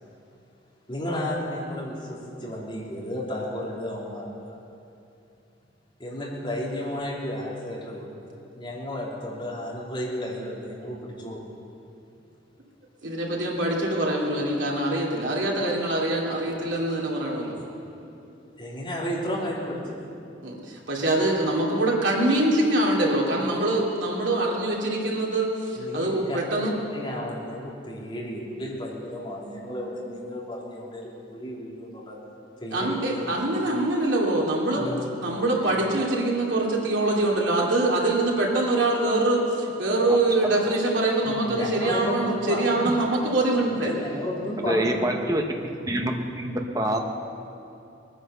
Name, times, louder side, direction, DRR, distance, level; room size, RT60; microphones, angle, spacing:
voice 1, 0.9-4.5 6.0-8.1 8.6-11.4 18.5-20.1 25.7-26.4 26.9-32.2 32.6-33.2 34.7-35.0 41.4-42.8 43.9-45.3, left 1 dB, 25° left, -5 dB, 3.2 m, -33 dB
voice 2, 13.0-17.6 20.4-25.5 25.9-26.8 32.7-34.9 35.2-43.9, right 2 dB, 75° right, -3 dB, 2.8 m, -24 dB
voice 3, 44.6-45.4 45.9-47.0, right 1 dB, 20° right, 3 dB, 1.0 m, -26 dB
20.0 x 10.0 x 6.7 m, 2.7 s
head